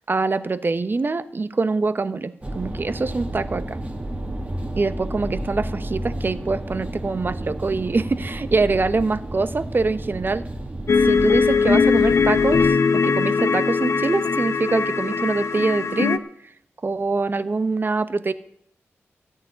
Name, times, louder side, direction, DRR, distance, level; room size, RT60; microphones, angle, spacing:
voice 1, 0.1-3.8 4.8-10.4 11.0-16.2 16.8-18.3, right 3 dB, 40° right, 12 dB, 1.0 m, -24 dB
sound 1, 2.4-12.8, right 1 dB, 25° right, 1.9 m, -31 dB
sound 2, 10.9-16.2, left 5 dB, 65° left, 0.7 m, -20 dB
14.0 x 6.3 x 9.9 m, 0.69 s
cardioid pair, 50°, 5 cm